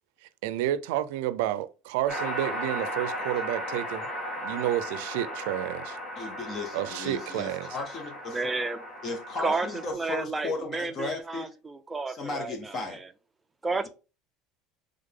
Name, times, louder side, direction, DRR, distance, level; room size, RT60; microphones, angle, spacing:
voice 1, 0.4-4.1 4.4-6.0 6.7-7.8, right 13 dB, 85° right, 0.4 m, -30 dB
sound 1, 2.1-9.9, equal, 20° left, 1.6 m, -36 dB
voice 2, 6.2-8.4 9.0-11.5 12.1-13.0, left 3 dB, 35° left, 0.9 m, -35 dB
voice 3, 8.3-8.8 9.4-9.7 9.9-12.5 13.6-13.9, right 3 dB, 15° right, 0.5 m, -31 dB
3.7 x 3.4 x 3.7 m
cardioid pair, 130°, 0 cm